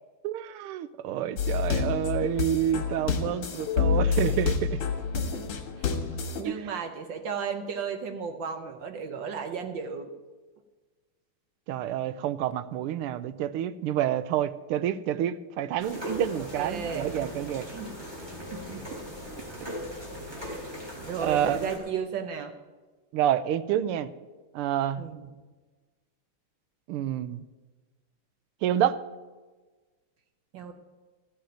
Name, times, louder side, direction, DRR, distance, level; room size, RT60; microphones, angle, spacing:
voice 1, 0.2-4.8 6.4-6.7 11.7-17.7 20.4-20.6 21.2-21.6 23.1-24.1 24.5-25.0 26.9-27.4 28.6-29.0, right 11 dB, 85° right, 14 dB, 1.5 m, -28 dB
sound 1, 1.4-6.4, left 6 dB, 85° left, 2.3 m, -28 dB
voice 2, 5.2-5.9 6.4-10.1 16.6-17.1 17.7-17.9 18.5-18.8 21.0-22.5 25.0-25.3 30.5-30.7, right 6 dB, 65° right, 7 dB, 1.4 m, -34 dB
sound 2, 15.8-21.8, equal, 10° right, 3.5 m, -39 dB
14.5 x 5.1 x 9.0 m, 1.3 s
omnidirectional pair, 2.4 m